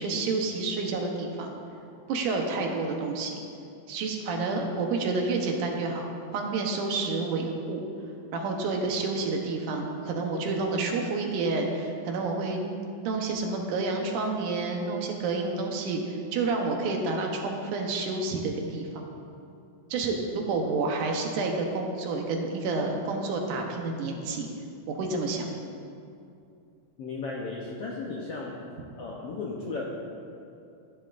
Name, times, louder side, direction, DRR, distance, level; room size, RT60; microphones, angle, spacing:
voice 1, 0.0-1.5 2.1-3.4 3.9-7.8 8.3-12.8 13.0-19.1 19.9-24.5 24.9-25.5, right 3 dB, 75° right, 1 dB, 2.5 m, -29 dB
voice 2, 27.0-28.6 29.0-29.8, left 3 dB, 70° left, -3 dB, 1.4 m, -35 dB
14.5 x 10.5 x 2.5 m, 2.5 s
omnidirectional pair, 3.7 m